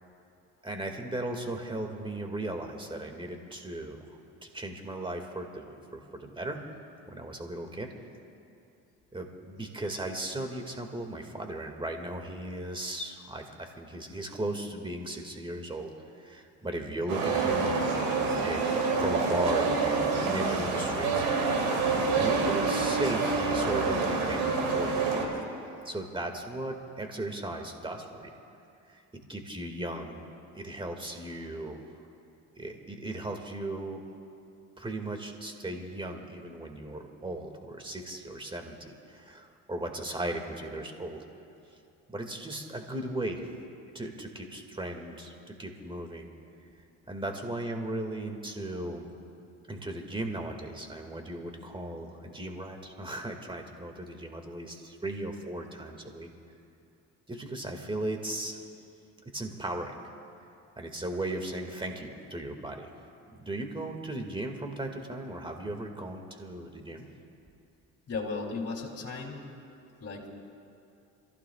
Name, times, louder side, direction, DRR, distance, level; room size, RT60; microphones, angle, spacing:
voice 1, 0.6-6.6 7.1-7.9 9.1-17.9 18.4-18.7 19.0-21.7 22.1-25.4 25.8-28.3 28.9-30.2 30.5-31.8 32.6-34.0 34.8-41.2 42.1-43.5 43.9-46.3 47.1-49.1 49.7-56.3 57.3-58.6 59.3-59.9 60.8-62.9 63.3-67.1, right 1 dB, 15° right, 3 dB, 2.1 m, -37 dB
sound 1, 17.1-25.2, right 4 dB, 85° right, 3.0 m, -27 dB
voice 2, 68.1-69.4 70.0-70.3, left 4 dB, 45° left, 0 dB, 3.4 m, -35 dB
27.5 x 15.5 x 2.4 m, 2.8 s
supercardioid pair, 70°, 34 cm